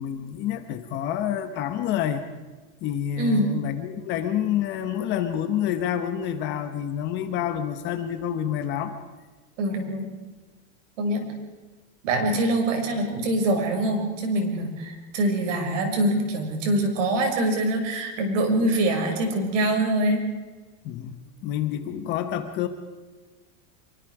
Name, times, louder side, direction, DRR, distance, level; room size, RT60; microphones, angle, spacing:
voice 1, 0.0-2.2 2.8-8.9 20.8-22.7, left 10 dB, 25° left, 8 dB, 1.1 m, -28 dB
voice 2, 3.2-3.5 9.6-10.1 11.0-11.2 12.0-20.2, right 1 dB, 65° right, 3 dB, 6.3 m, -24 dB
26.5 x 23.5 x 4.9 m, 1.3 s
supercardioid pair, 180°, 41 cm